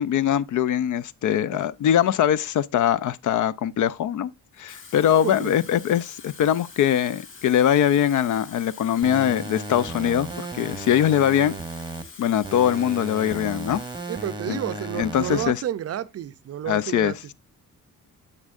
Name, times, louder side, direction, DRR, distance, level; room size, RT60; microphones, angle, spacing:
voice 1, 0.0-4.3 4.6-11.6 12.2-13.8 14.5-14.6 14.9-15.6 16.7-17.1, left 10 dB, 60° left, 0.5 m, -22 dB
Water tap faucet / Fill (with liquid), 4.5-14.4 14.8-15.1, left 4 dB, 35° left, 1.3 m, -45 dB
sound 1, 9.0-12.0 12.4-15.5, right 3 dB, 15° right, 0.8 m, -35 dB
voice 2, 14.1-17.2, right 11 dB, 45° right, 0.5 m, -31 dB
9.8 x 7.3 x 2.4 m
cardioid pair, 170°, 35 cm